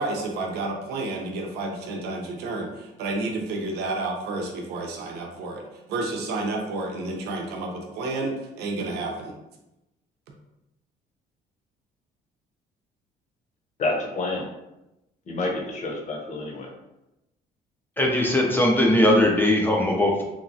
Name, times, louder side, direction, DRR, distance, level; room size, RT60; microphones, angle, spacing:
voice 1, 0.0-5.6 5.9-9.3, right 2 dB, 75° right, 1 dB, 0.6 m, -30 dB
voice 2, 13.8-14.4 15.3-16.7, left 2 dB, 45° left, 0 dB, 0.7 m, -28 dB
voice 3, 18.0-20.2, left 1 dB, 10° left, -1 dB, 0.4 m, -20 dB
2.9 x 2.2 x 2.6 m, 0.92 s
cardioid pair, 110°, 17 cm